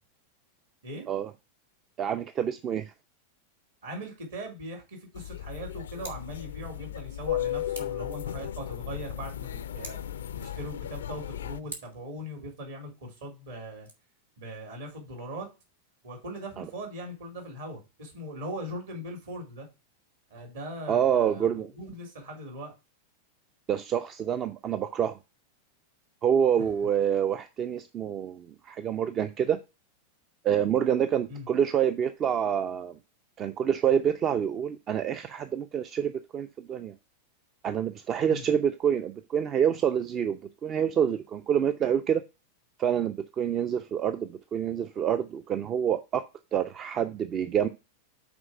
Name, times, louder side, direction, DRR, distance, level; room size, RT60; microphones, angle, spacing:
voice 1, 2.0-2.9 16.6-16.7 20.9-21.7 23.7-25.2 26.2-29.6 30.4-32.9 33.4-36.9 37.6-42.2 42.8-46.2 46.5-47.7, right 8 dB, 30° right, 0.5 m, -27 dB
voice 2, 3.8-10.0 10.3-13.9 14.4-15.5 16.0-19.7 20.3-22.7 26.6-26.7 31.3-31.4 38.3-38.4, equal, 60° right, 3.5 m, -40 dB
sound 1, 5.1-11.6, left 11 dB, 65° left, 0.4 m, -35 dB
Scissors, 5.9-6.3 7.7-8.1 9.7-10.2 11.7-12.1 13.7-13.9, right 2 dB, 80° right, 1.6 m, -44 dB
6.1 x 4.6 x 6.3 m
figure-of-eight pair, 90°, 0 cm